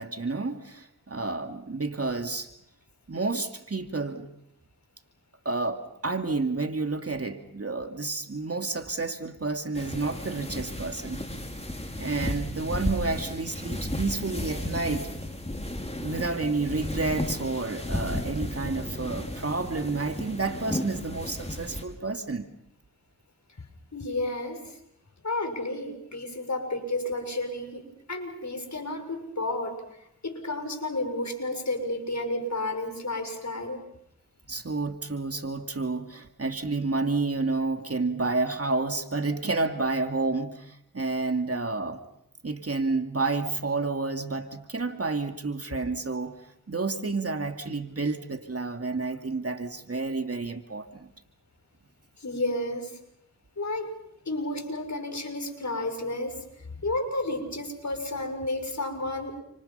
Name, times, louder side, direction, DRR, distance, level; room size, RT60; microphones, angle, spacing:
voice 1, 0.0-2.5 3.1-4.3 5.4-11.2 12.0-15.1 16.0-22.5 34.5-42.0 42.4-46.4 46.7-51.1, right 3 dB, 40° right, 6 dB, 2.6 m, -30 dB
sound 1, 9.7-21.9, left 1 dB, 15° left, 5.3 m, -34 dB
voice 2, 23.9-24.8 25.2-33.8 52.2-53.0 53.6-53.9 54.2-59.4, left 2 dB, 50° left, 5 dB, 6.6 m, -32 dB
29.5 x 27.0 x 5.8 m, 0.73 s
cardioid pair, 40°, 36 cm